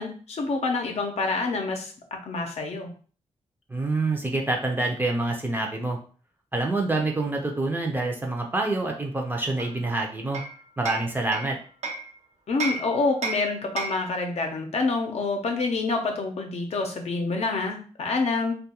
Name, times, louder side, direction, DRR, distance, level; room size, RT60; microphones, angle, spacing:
voice 1, 0.0-1.9 2.2-2.9 12.5-18.6, left 3 dB, 60° left, 3 dB, 0.6 m, -27 dB
voice 2, 3.7-6.0 6.5-10.4 10.8-11.6, right 2 dB, 15° right, 1 dB, 0.5 m, -26 dB
Hammer, 9.6-12.1 12.6-14.2, right 3 dB, 70° right, 0.6 m, -34 dB
2.3 x 2.2 x 2.9 m, 0.40 s
wide cardioid pair, 100°, 12 cm